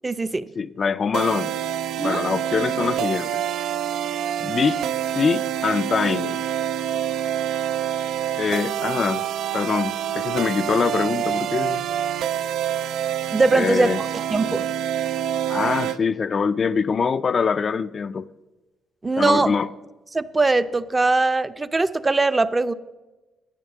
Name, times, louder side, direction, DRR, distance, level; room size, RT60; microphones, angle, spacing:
voice 1, 0.0-0.5 2.0-2.2 13.3-14.7 19.0-19.5 20.1-22.7, right 3 dB, 20° right, 0.5 m, -21 dB
voice 2, 0.6-1.5 2.0-3.4 4.4-4.8 5.2-6.4 8.4-9.3 9.5-11.8 13.5-14.0 15.5-18.3 19.2-19.7, left 5 dB, 45° left, 0.3 m, -24 dB
sound 1, 1.1-16.0, right 10 dB, 80° right, 0.3 m, -26 dB
11.0 x 8.9 x 6.5 m
cardioid pair, 90°, 0 cm